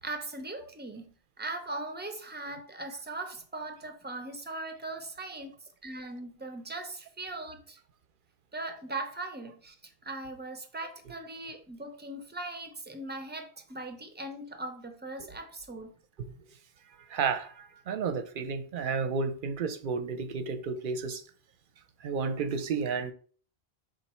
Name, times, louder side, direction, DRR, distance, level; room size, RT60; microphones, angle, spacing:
voice 1, 0.0-1.0 1.4-5.5 5.8-7.8 8.5-15.9, right 2 dB, 15° right, 0.3 m, -39 dB
voice 2, 17.1-21.2 22.0-23.1, right 5 dB, 60° right, 0.6 m, -32 dB
4.5 x 2.5 x 4.2 m
omnidirectional pair, 1.1 m